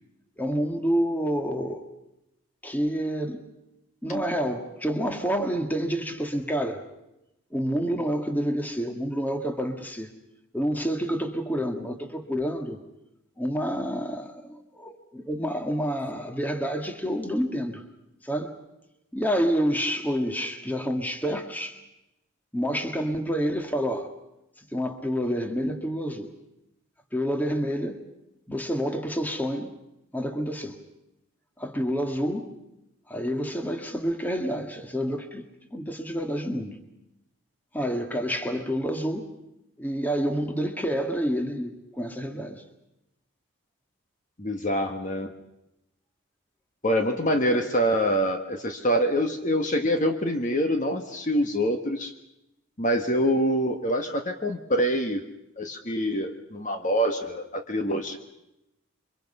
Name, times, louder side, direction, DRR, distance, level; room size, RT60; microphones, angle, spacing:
voice 1, 0.4-1.9 2.6-3.4 4.0-6.8 7.5-10.1 10.5-12.8 13.4-17.8 18.2-18.5 19.1-21.8 22.5-24.1 24.7-26.3 27.1-28.0 28.5-29.7 30.1-30.8 31.6-32.5 33.1-36.8 37.7-39.3 39.8-42.6 47.5-47.6, equal, 10° left, 5 dB, 1.7 m, -28 dB
voice 2, 44.4-45.3 46.8-52.1 52.8-55.2 55.6-58.2, equal, 35° left, 6 dB, 1.4 m, -25 dB
28.0 x 24.0 x 5.5 m, 0.88 s
head